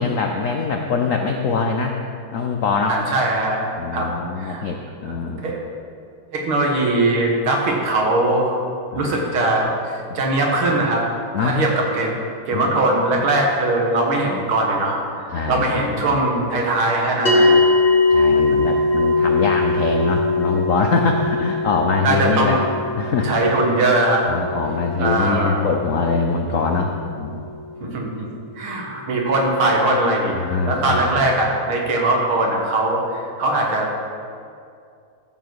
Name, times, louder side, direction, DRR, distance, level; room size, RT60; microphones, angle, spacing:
voice 1, 0.0-2.0 2.3-3.0 3.8-5.4 8.9-9.1 10.1-10.2 11.3-11.6 12.5-12.9 15.3-16.2 18.1-22.6 23.0-23.3 24.3-27.5 27.8-27.9 30.3-31.3, left 4 dB, 85° left, 3 dB, 0.7 m, -23 dB
voice 2, 2.9-3.6 3.9-4.1 4.4-4.6 5.4-5.6 6.3-8.6 9.0-9.7 10.1-11.1 11.4-12.2 12.5-15.0 15.5-17.6 22.0-22.6 23.2-24.2 25.0-25.7 27.8-28.3 28.6-33.9, right 2 dB, 80° right, -1 dB, 2.5 m, -20 dB
sound 1, 17.3-27.8, left 3 dB, 35° left, 1.2 m, -21 dB
14.5 x 7.2 x 4.7 m, 2.4 s
omnidirectional pair, 2.3 m